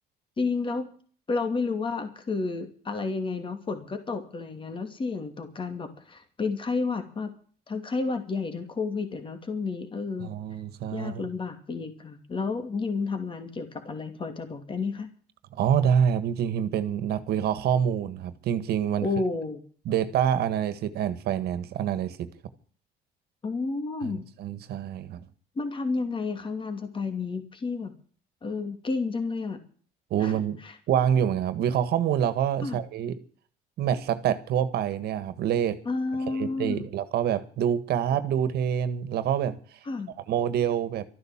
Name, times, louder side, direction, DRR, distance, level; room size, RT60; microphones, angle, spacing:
voice 1, 0.4-0.9 1.3-7.3 7.7-10.4 10.9-15.1 19.0-19.6 23.4-24.3 25.6-27.9 28.4-29.6 30.2-30.8 32.6-32.8 35.8-36.9 39.8-40.1, left 4 dB, 30° left, 2.7 m, -31 dB
voice 2, 10.2-11.2 15.5-19.1 19.8-22.3 24.0-25.2 30.1-30.6 30.9-33.1 33.8-35.8 36.3-39.6 40.3-41.0, right 9 dB, 70° right, 1.7 m, -26 dB
13.5 x 11.0 x 7.4 m
cardioid pair, 110°, 17 cm